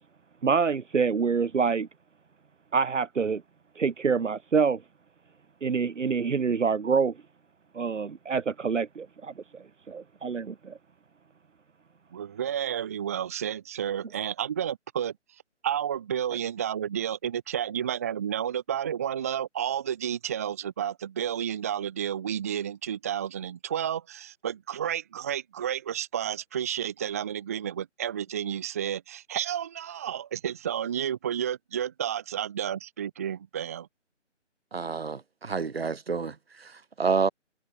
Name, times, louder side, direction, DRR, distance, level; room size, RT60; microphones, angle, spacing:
voice 1, 0.4-1.9 2.7-3.4 3.8-4.8 5.6-7.2 7.7-10.8, right 5 dB, 80° right, 0.9 m, -26 dB
voice 2, 12.1-15.1 15.6-33.9, right 9 dB, 15° right, 0.9 m, -31 dB
voice 3, 34.7-37.3, right 5 dB, 55° right, 2.3 m, -29 dB
figure-of-eight pair, 155°, 36 cm